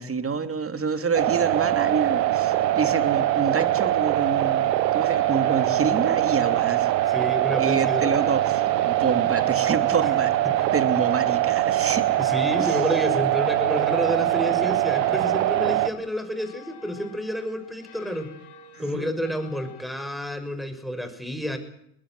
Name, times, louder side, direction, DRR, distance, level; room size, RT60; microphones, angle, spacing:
voice 1, 0.0-4.7 4.9-6.9 7.6-10.3 10.7-12.0 12.6-12.8 18.7-19.1, right 5 dB, 25° right, 9 dB, 3.0 m, -27 dB
sound 1, 1.1-15.9, right 14 dB, 90° right, 1.5 m, -23 dB
sound 2, 1.5-19.8, left 5 dB, 85° left, 6.8 m, -51 dB
voice 2, 7.1-8.3 10.4-10.5 12.2-18.3 18.8-21.6, equal, ahead, 9 dB, 6.1 m, -29 dB
21.5 x 20.5 x 7.9 m, 0.72 s
hypercardioid pair, 80°, 49 cm